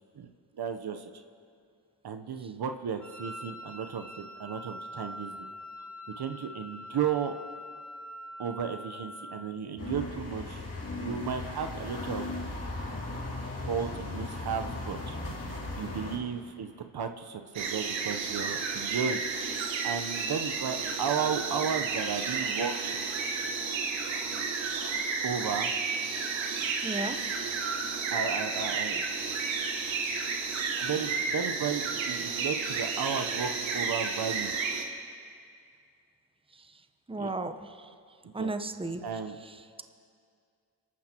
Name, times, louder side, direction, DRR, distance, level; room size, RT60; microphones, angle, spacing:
voice 1, 0.6-1.1 2.0-5.5 6.2-7.3 8.4-10.6 10.9-12.3 13.7-15.2 15.8-16.7 16.9-19.2 19.8-23.0 25.2-25.7 28.1-29.0 30.8-34.5 37.2-37.3 38.4-38.5 39.0-39.4, right 6 dB, 55° right, 7 dB, 1.0 m, -34 dB
Wind instrument woodwind instrument, 3.0-9.6, left 1 dB, 5° left, 2.6 m, -44 dB
sound 1, 9.8-16.2, left 2 dB, 35° left, 4.5 m, -37 dB
sound 2, 17.5-34.8, right 5 dB, 80° right, 1.4 m, -32 dB
voice 2, 26.8-27.2 36.5-36.7 37.1-37.9 38.3-39.0, right 2 dB, 10° right, 8 dB, 1.0 m, -34 dB
29.0 x 12.0 x 3.0 m, 2.2 s
supercardioid pair, 40°, 45 cm